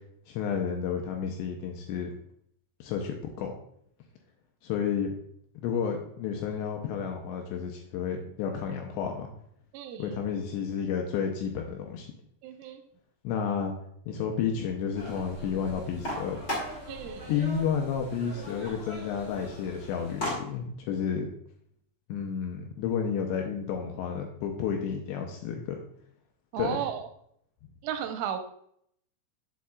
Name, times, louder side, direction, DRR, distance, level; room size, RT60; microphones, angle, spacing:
voice 1, 0.3-2.1 2.8-3.5 4.6-5.1 5.6-9.3 10.0-12.1 13.2-13.7 14.1-16.4 17.3-21.3 22.1-25.8 26.6-26.8, left 7 dB, 80° left, 2 dB, 2.6 m, -31 dB
voice 2, 9.7-10.1 12.4-12.8 16.9-17.3 26.5-27.1 27.8-28.4, right 9 dB, 90° right, 6 dB, 3.2 m, -34 dB
sound 1, 14.9-20.3, equal, 30° left, 2.0 m, -38 dB
8.2 x 7.5 x 2.3 m, 0.69 s
omnidirectional pair, 5.6 m